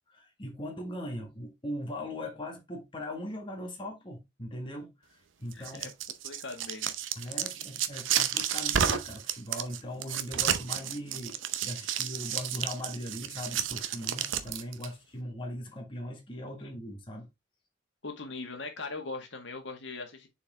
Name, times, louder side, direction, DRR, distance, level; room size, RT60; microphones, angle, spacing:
voice 1, 0.1-5.9 7.1-17.3, left 1 dB, 25° left, 1.7 m, -40 dB
voice 2, 5.5-5.9 6.2-6.9 7.2-7.5 18.0-20.3, left 3 dB, 70° left, 1.7 m, -40 dB
sound 1, 5.5-14.9, right 9 dB, 80° right, 0.7 m, -31 dB
6.9 x 4.4 x 3.4 m
head